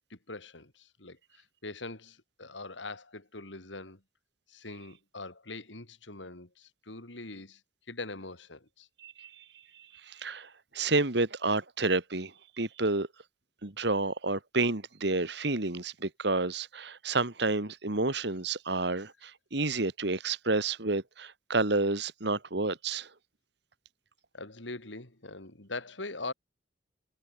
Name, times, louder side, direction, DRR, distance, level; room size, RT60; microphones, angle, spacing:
voice 1, 0.1-4.0 4.5-7.6 7.9-8.9 24.3-26.3, left 3 dB, 85° left, 3.7 m, -42 dB
voice 2, 9.0-9.4 9.7-13.1 13.6-23.1, right 3 dB, 65° right, 2.0 m, -30 dB
head